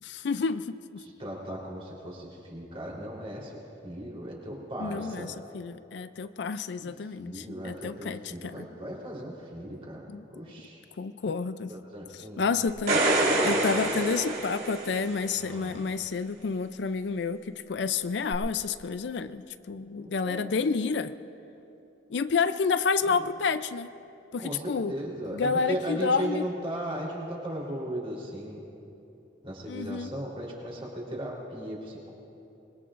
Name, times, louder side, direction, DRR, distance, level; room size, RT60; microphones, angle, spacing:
voice 1, 0.0-1.0 4.8-8.7 10.1-10.3 11.0-11.7 12.1-21.1 22.1-23.9 24.3-24.9 25.2-26.5 29.7-30.1, left 5 dB, 65° left, 12 dB, 0.4 m, -30 dB
voice 2, 1.0-5.3 6.8-6.9 7.2-10.0 10.4-10.8 11.7-12.4 13.4-13.6 15.4-15.8 20.2-20.5 24.4-28.6 29.4-32.1, right 1 dB, 30° right, -3 dB, 3.7 m, -37 dB
sound 1, 12.7-15.2 18.3-18.4, right 2 dB, 55° right, 3.5 m, -26 dB
26.0 x 21.5 x 2.5 m, 2.9 s
head